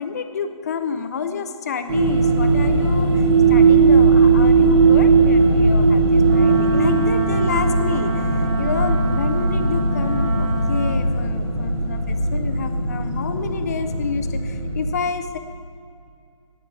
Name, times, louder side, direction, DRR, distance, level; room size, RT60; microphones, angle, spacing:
voice 1, 0.0-15.4, left 6 dB, 30° left, 8 dB, 0.6 m, -29 dB
sound 1, 1.9-14.9, right 4 dB, 50° right, 2.2 m, -18 dB
Wind instrument woodwind instrument, 6.2-11.0, right 3 dB, 15° right, 0.8 m, -29 dB
11.5 x 9.2 x 5.9 m, 2.4 s
figure-of-eight pair, 150°, 17 cm